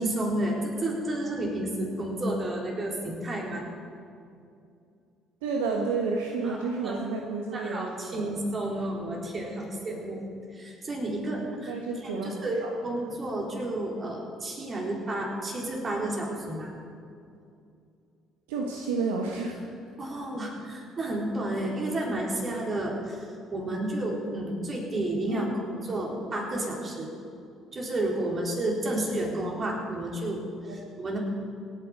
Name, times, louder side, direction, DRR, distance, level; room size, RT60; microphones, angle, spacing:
voice 1, 0.0-3.7 6.4-7.0 7.5-11.7 12.0-16.7 20.0-23.3 23.5-27.1 27.7-31.2, right 1 dB, 35° right, -1 dB, 3.9 m, -31 dB
voice 2, 5.4-8.4 11.7-12.8 18.5-19.6 25.3-25.5 30.7-30.8, right 4 dB, 70° right, 1 dB, 1.3 m, -31 dB
27.0 x 9.2 x 5.0 m, 2.5 s
figure-of-eight pair, 50°, 0 cm